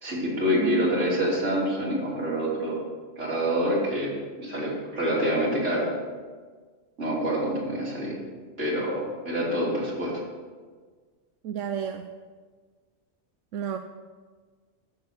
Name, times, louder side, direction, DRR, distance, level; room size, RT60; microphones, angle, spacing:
voice 1, 0.0-2.8 3.2-4.1 4.4-5.9 7.0-8.2 8.6-10.1, equal, 70° right, -4 dB, 3.6 m, -26 dB
voice 2, 11.4-12.1 13.5-13.8, right 8 dB, 85° right, 7 dB, 1.0 m, -31 dB
13.5 x 6.8 x 6.4 m, 1.5 s
omnidirectional pair, 1.3 m